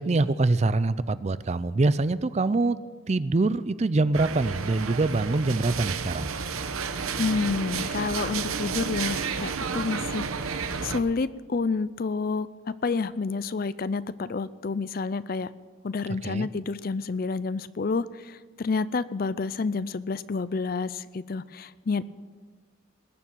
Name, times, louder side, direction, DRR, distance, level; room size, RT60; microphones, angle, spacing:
voice 1, 0.0-2.8 3.1-6.3 16.2-16.5, right 2 dB, 30° right, 15 dB, 0.4 m, -24 dB
sound 1, 4.1-11.0, right 5 dB, 90° right, 0.9 m, -31 dB
voice 2, 7.2-10.5 10.8-15.5 15.8-22.0, left 4 dB, 45° left, 17 dB, 0.4 m, -29 dB
20.0 x 7.1 x 8.9 m, 1.4 s
head